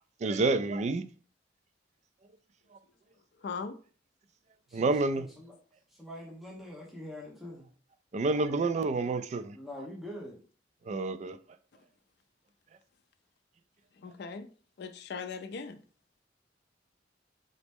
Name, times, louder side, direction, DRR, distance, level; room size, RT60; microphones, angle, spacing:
voice 1, 0.2-1.0 4.7-5.3 8.1-9.6 10.9-11.4, right 3 dB, 40° right, 0.3 m, -28 dB
voice 2, 3.4-3.7 14.0-14.5 14.8-15.8, left 5 dB, 60° left, 0.4 m, -39 dB
voice 3, 5.1-5.5 5.9-7.7 9.5-10.4, left 1 dB, ahead, 0.9 m, -44 dB
4.0 x 3.0 x 3.5 m
head